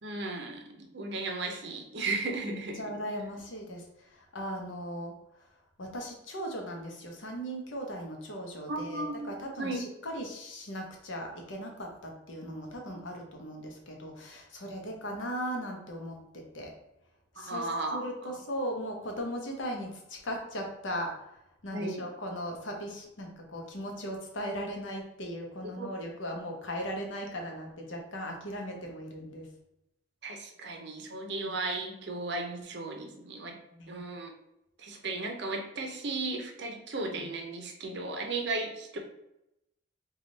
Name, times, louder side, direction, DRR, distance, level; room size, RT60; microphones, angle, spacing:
voice 1, 0.0-2.8 8.7-9.3 9.6-9.8 17.4-18.0 21.7-22.0 25.8-26.1 30.2-33.6 33.9-34.3 34.8-39.0, right 2 dB, 55° right, 3 dB, 0.6 m, -35 dB
voice 2, 2.5-5.5 5.8-16.7 17.3-29.5 33.7-34.0, equal, 70° left, 1 dB, 0.8 m, -38 dB
3.4 x 2.4 x 3.9 m, 0.85 s
head